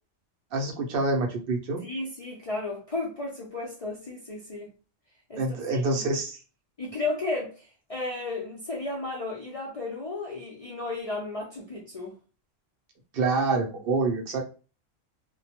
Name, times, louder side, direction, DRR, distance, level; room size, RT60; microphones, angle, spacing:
voice 1, 0.5-1.8 5.4-6.4 13.1-14.4, right 3 dB, 60° right, 0.6 m, -26 dB
voice 2, 1.8-4.7 5.3-6.0 6.8-12.1, left 2 dB, 60° left, 0.3 m, -34 dB
2.2 x 2.1 x 2.8 m
omnidirectional pair, 1.3 m